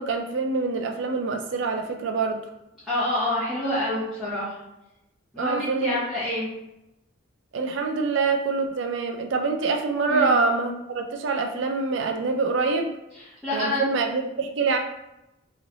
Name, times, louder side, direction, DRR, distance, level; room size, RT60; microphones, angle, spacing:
voice 1, 0.0-2.4 5.4-6.0 7.5-12.9 13.5-14.8, right 4 dB, 60° right, 4 dB, 0.4 m, -25 dB
voice 2, 2.8-4.6 5.3-6.5 10.1-10.4 13.2-13.8, left 1 dB, ahead, -13 dB, 1.0 m, -27 dB
3.1 x 2.9 x 2.6 m, 0.91 s
head